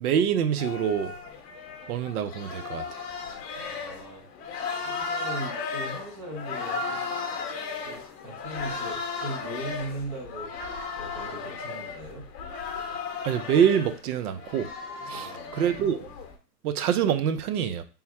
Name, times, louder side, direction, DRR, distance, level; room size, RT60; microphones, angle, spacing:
voice 1, 0.0-1.1 1.9-3.0 13.2-14.7 15.1-16.0 16.6-17.8, right 8 dB, 60° right, 10 dB, 0.7 m, -25 dB
sound 1, 0.6-16.3, left 4 dB, 40° left, 0.9 m, -35 dB
voice 2, 3.5-4.2 4.8-7.1 7.9-10.5 11.0-12.2 15.0-15.7, right 1 dB, 15° right, 0 dB, 0.4 m, -39 dB
3.6 x 2.1 x 4.2 m, 0.34 s
hypercardioid pair, 140°, 50 cm